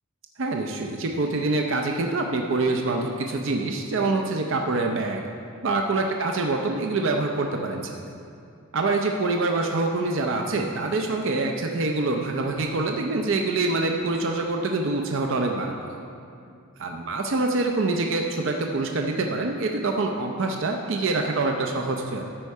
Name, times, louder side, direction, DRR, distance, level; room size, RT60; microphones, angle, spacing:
voice 1, 0.4-5.2 5.6-8.0 8.7-16.0 16.8-22.2, right 3 dB, 60° right, 3 dB, 0.5 m, -25 dB
13.0 x 4.5 x 5.4 m, 2.5 s
head